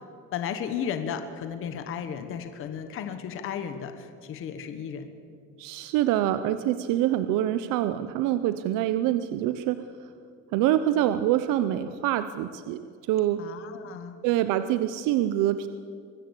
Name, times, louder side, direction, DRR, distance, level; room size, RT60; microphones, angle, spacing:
voice 1, 0.3-5.1 13.4-14.2, left 8 dB, 45° left, 8 dB, 1.3 m, -34 dB
voice 2, 5.6-9.8 10.5-12.8 13.1-13.4 14.2-15.7, right 12 dB, 80° right, 11 dB, 0.8 m, -25 dB
23.5 x 13.5 x 8.3 m, 2.4 s
cardioid pair, 175°, 31 cm